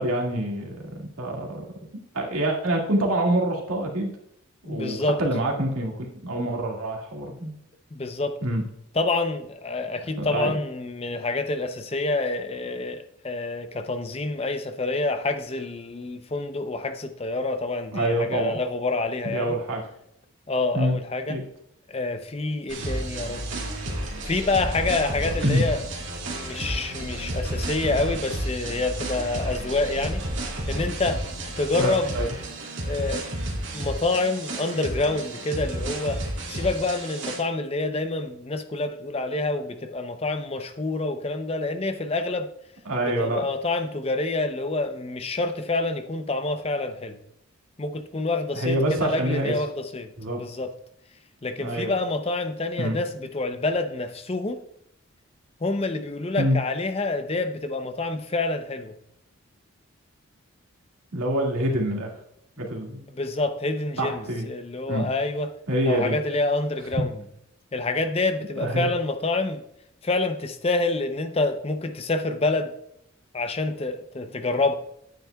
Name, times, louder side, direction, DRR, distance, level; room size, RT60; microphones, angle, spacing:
voice 1, 0.0-1.7 2.1-4.1 4.7-7.5 8.4-8.6 10.0-10.5 17.9-18.6 19.2-19.8 20.7-21.0 21.3-21.4 25.4-25.6 31.8-32.3 42.9-43.5 48.5-49.5 50.2-50.4 51.6-51.9 52.8-53.0 56.4-56.6 61.1-62.1 62.6-63.1 64.0-64.5 64.9-65.1 65.7-66.2 68.6-68.9, right 1 dB, 85° right, 2.0 m, -26 dB
voice 2, 4.7-5.2 7.9-8.4 9.0-19.6 20.5-21.4 21.9-23.7 24.2-25.8 26.2-30.2 30.7-31.2 31.6-32.1 32.8-33.3 33.7-36.2 36.5-42.5 43.2-47.2 47.8-50.7 51.4-54.6 55.6-58.9 63.1-65.5 65.9-67.2 67.7-69.6 70.0-72.7 73.3-74.8, left 2 dB, 30° left, 0.5 m, -27 dB
sound 1, 22.7-37.4, right 1 dB, 60° right, 2.2 m, -31 dB
10.0 x 9.0 x 2.3 m
head